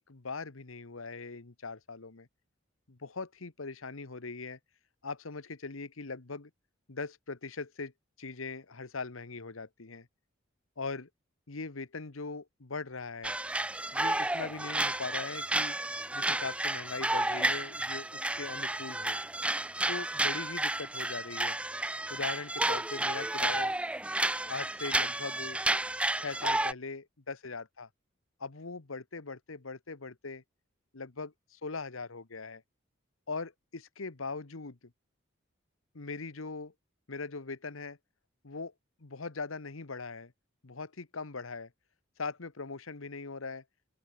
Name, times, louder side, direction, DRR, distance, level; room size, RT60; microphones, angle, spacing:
voice 1, 0.0-2.3 2.9-4.6 5.0-6.5 6.9-7.9 8.2-10.1 10.8-11.1 11.5-13.4 13.9-15.8 16.1-19.2 19.9-21.6 22.1-23.7 24.5-25.6 26.2-27.9 28.4-30.4 30.9-32.6 33.3-34.8 35.9-36.7 37.1-38.0 38.4-38.7 39.0-40.3 40.6-41.7 42.2-43.6, left 4 dB, 85° left, 1.3 m, -40 dB
sound 1, 13.2-26.7, right 2 dB, 5° right, 0.4 m, -31 dB
open air
head